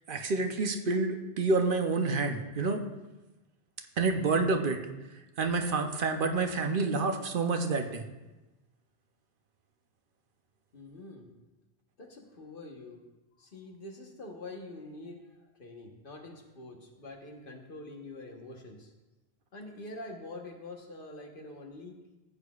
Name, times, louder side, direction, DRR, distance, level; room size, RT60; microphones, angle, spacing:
voice 1, 0.1-2.8 4.0-4.8 5.4-8.1, right 3 dB, 60° right, 6 dB, 0.8 m, -28 dB
voice 2, 10.7-11.3 12.0-13.0 13.4-18.9 19.5-22.0, left 2 dB, 55° left, 2 dB, 1.4 m, -45 dB
14.5 x 8.2 x 2.4 m, 1.1 s
omnidirectional pair, 1.1 m